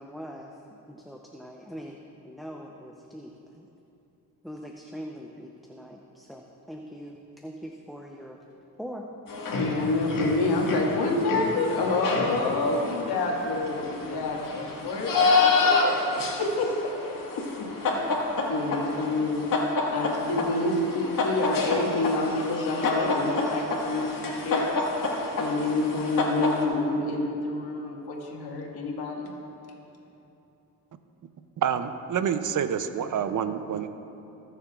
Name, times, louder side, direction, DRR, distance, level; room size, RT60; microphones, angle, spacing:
voice 1, 0.0-2.0 2.2-3.7 4.4-8.4 8.8-9.1, equal, ahead, 1 dB, 0.7 m, -42 dB
sound 1, 9.3-26.6, left 3 dB, 55° left, 1.8 m, -28 dB
voice 2, 9.6-16.9 17.3-17.4 17.8-18.1 18.5-19.4 19.9-24.8 25.4-29.3, left 2 dB, 75° left, -2 dB, 2.0 m, -28 dB
voice 3, 31.6-33.9, right 8 dB, 50° right, 10 dB, 0.7 m, -27 dB
20.0 x 7.0 x 2.5 m, 2.9 s
supercardioid pair, 65°, 39 cm